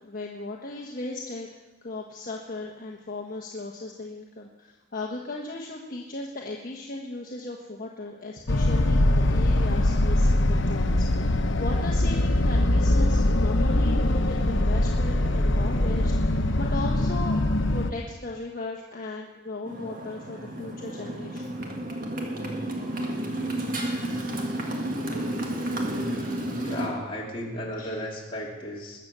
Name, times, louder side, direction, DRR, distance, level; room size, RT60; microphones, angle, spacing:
voice 1, 0.0-1.5 1.8-17.4 17.7-21.6 27.8-28.0, left 2 dB, 50° left, -1 dB, 1.3 m, -37 dB
sound 1, 8.5-17.9, left 1 dB, 80° left, 1.0 m, -22 dB
Motorcycle, 19.7-26.9, right 1 dB, 45° right, 1.8 m, -31 dB
voice 2, 26.2-29.0, left 1 dB, 30° left, -3 dB, 3.1 m, -35 dB
20.5 x 7.5 x 6.8 m, 1.2 s
head